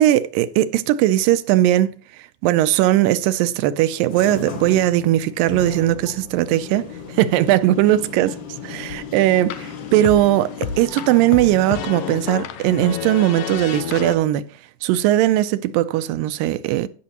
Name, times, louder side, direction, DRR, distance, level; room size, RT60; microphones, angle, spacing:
voice 1, 0.0-1.9 2.4-6.9 7.1-14.4 14.8-16.9, right 14 dB, 85° right, 2.2 m, -19 dB
sound 1, 4.1-12.3, left 6 dB, 55° left, 1.3 m, -36 dB
sound 2, 8.9-14.1, left 9 dB, 75° left, 1.9 m, -31 dB
16.5 x 6.1 x 2.9 m
omnidirectional pair, 4.0 m